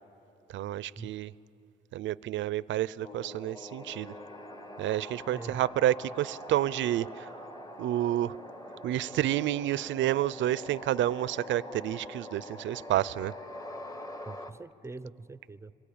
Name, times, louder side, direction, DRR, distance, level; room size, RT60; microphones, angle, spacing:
voice 1, 0.5-1.3 1.9-4.1 4.8-7.4 7.8-8.4 8.8-13.3, right 13 dB, 70° right, 0.5 m, -29 dB
sound 1, 3.0-14.5, left 1 dB, 15° left, 1.3 m, -44 dB
voice 2, 5.3-5.7 14.3-15.7, right 3 dB, 15° right, 0.5 m, -43 dB
26.0 x 22.5 x 8.7 m
cardioid pair, 90°, 20 cm